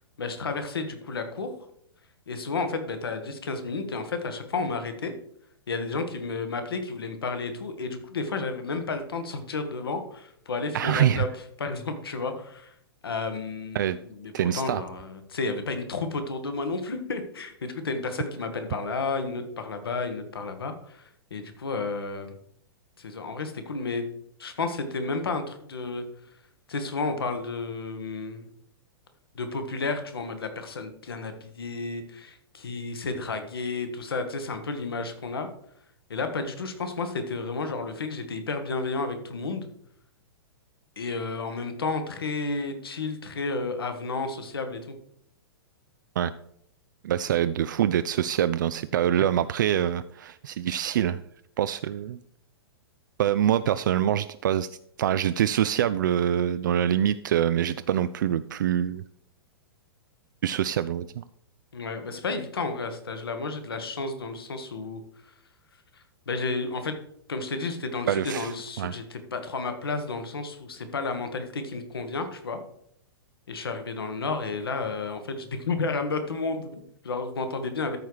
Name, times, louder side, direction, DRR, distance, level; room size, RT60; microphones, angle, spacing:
voice 1, 0.2-1.5 2.3-5.1 5.7-11.3 11.6-12.7 13.0-21.0 21.3-22.3 23.0-24.0 24.4-26.0 26.7-28.5 29.3-35.5 36.1-39.7 41.0-44.9 61.7-65.0 65.9-67.0 67.3-72.6 73.5-78.0, left 3 dB, 65° left, 8 dB, 1.4 m, -32 dB
voice 2, 10.7-11.3 13.7-14.0 14.3-14.8 46.2-46.3 47.0-51.2 51.6-52.2 53.2-54.7 55.0-59.0 60.4-61.2 68.1-68.5 68.8-69.0, right 10 dB, 50° right, 12 dB, 0.3 m, -25 dB
13.5 x 4.6 x 4.8 m, 0.69 s
figure-of-eight pair, 105°, 13 cm